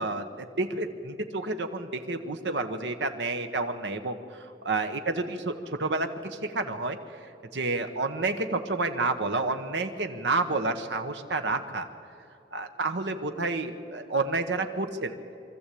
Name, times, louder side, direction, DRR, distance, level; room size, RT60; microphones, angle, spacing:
voice 1, 0.0-7.0 7.5-11.9 12.5-15.2, right 3 dB, 90° right, 7 dB, 1.2 m, -30 dB
23.5 x 14.0 x 8.5 m, 2.6 s
head